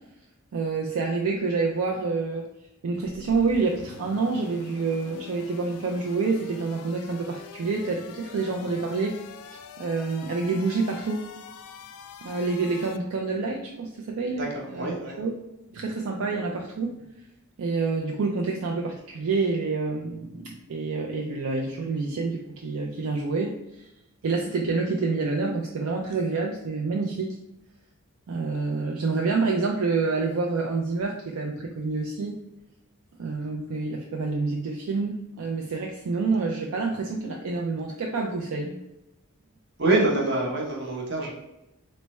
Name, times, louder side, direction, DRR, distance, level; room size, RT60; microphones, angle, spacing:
voice 1, 0.5-2.5 2.8-9.2 9.5-11.2 12.2-14.5 14.7-14.9 15.2-15.3 15.7-17.0 17.6-23.9 24.2-27.4 28.3-32.4 33.2-38.8, right 4 dB, 70° right, 0 dB, 0.4 m, -28 dB
sound 1, 3.0-13.0, left 6 dB, 80° left, 0.3 m, -45 dB
voice 2, 14.3-15.2 39.8-41.3, right 2 dB, 50° right, -2 dB, 0.9 m, -25 dB
3.3 x 2.1 x 4.1 m, 0.91 s
head